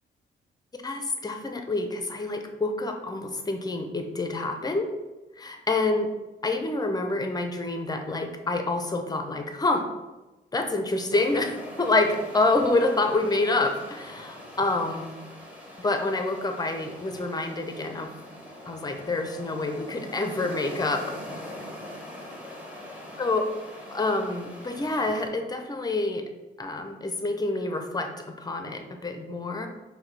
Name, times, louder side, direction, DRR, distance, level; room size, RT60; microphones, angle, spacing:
voice 1, 0.8-4.9 5.4-6.1 6.4-9.9 10.5-15.1 15.8-18.1 18.7-21.0 23.2-23.4 23.9-26.3 26.6-29.7, left 2 dB, 20° left, 5 dB, 0.6 m, -27 dB
sound 1, 11.1-25.3, left 1 dB, 5° right, 1.2 m, -42 dB
5.7 x 2.7 x 3.3 m, 1.1 s
cardioid pair, 90°, 20 cm